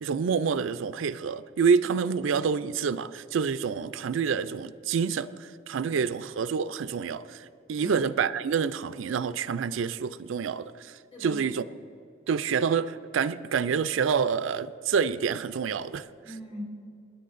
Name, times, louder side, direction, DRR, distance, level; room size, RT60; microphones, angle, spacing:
voice 1, 0.0-11.6 12.3-16.1, right 6 dB, 75° right, 13 dB, 0.4 m, -27 dB
voice 2, 11.1-11.4 16.2-16.6, left 1 dB, 30° left, -3 dB, 3.5 m, -41 dB
27.5 x 10.0 x 2.5 m, 2.5 s
head